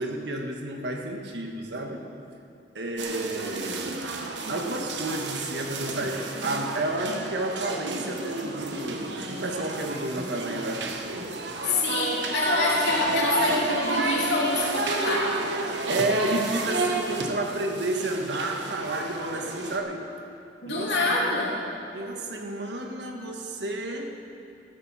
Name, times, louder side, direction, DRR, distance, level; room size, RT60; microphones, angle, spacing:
voice 1, 0.0-2.1 2.7-4.1 4.5-10.9 15.9-20.0 20.7-21.5 21.9-24.2, right 2 dB, 75° right, 2 dB, 1.5 m, -31 dB
sound 1, 3.0-19.8, right 2 dB, 90° right, 1.1 m, -31 dB
voice 2, 11.6-15.4 20.6-21.6, left 2 dB, 80° left, -3 dB, 2.8 m, -26 dB
14.5 x 13.5 x 4.3 m, 2.6 s
head